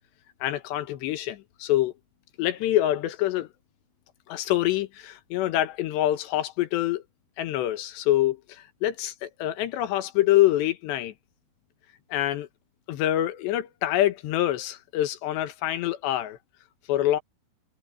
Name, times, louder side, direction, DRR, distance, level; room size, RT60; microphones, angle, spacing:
voice 1, 0.4-1.9 2.4-3.5 4.3-7.0 7.4-11.1 12.1-12.5 12.9-16.4 16.9-17.2, left 14 dB, 85° left, 3.5 m, -25 dB
omnidirectional pair, 4.9 m